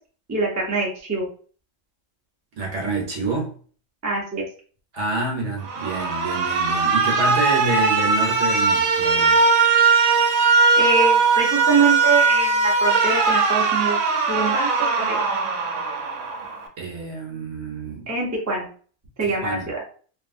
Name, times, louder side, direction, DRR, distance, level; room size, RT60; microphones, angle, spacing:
voice 1, 0.3-1.3 4.0-4.5 10.8-14.0 14.3-14.7 15.0-15.2 18.1-18.7 19.2-19.8, right 4 dB, 15° right, 0.6 m, -24 dB
voice 2, 2.6-3.5 4.9-9.4 16.8-18.1 19.2-19.7, right 3 dB, 65° right, 1.1 m, -28 dB
Alarm, 5.6-16.7, right 4 dB, 85° right, 1.0 m, -19 dB
2.8 x 2.4 x 2.5 m
omnidirectional pair, 1.4 m